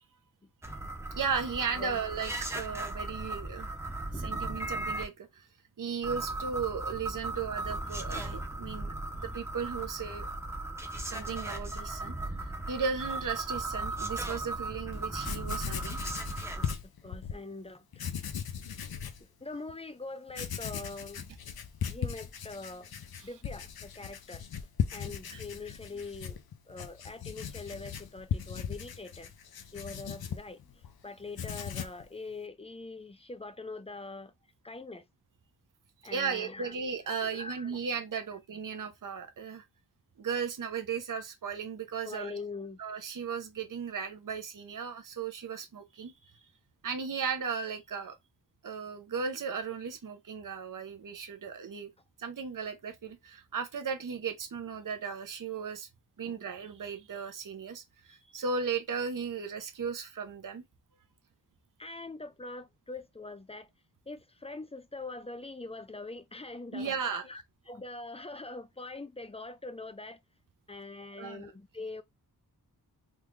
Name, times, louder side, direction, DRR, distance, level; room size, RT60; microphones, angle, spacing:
sound 1, 0.6-5.1 6.0-16.7, right 2 dB, 5° right, 0.8 m, -37 dB
voice 1, 1.2-3.7 4.1-5.5 5.8-10.3 11.1-12.2 12.7-16.0 23.2-23.3 25.3-25.4 36.1-39.6 40.2-42.3 42.8-46.1 46.8-48.2 48.6-51.9 52.2-55.9 56.2-60.6 66.7-67.3 71.1-71.5, right 6 dB, 55° right, 0.8 m, -36 dB
Writing, 14.9-15.0 15.2-17.4 17.9-19.2 19.7-19.8 20.3-30.9 31.2-32.0, left 8 dB, 65° left, 0.6 m, -38 dB
voice 2, 17.0-18.1 19.4-21.3 21.9-22.9 23.2-24.4 24.9-26.4 26.7-29.3 29.7-30.6 31.0-34.3 34.6-35.0 36.0-36.8 37.2-37.8 42.0-42.8 56.2-56.4 61.8-63.7 64.1-67.4 67.7-70.2 70.7-72.0, left 3 dB, 15° left, 0.4 m, -43 dB
3.7 x 2.4 x 3.1 m
wide cardioid pair, 80°, 39 cm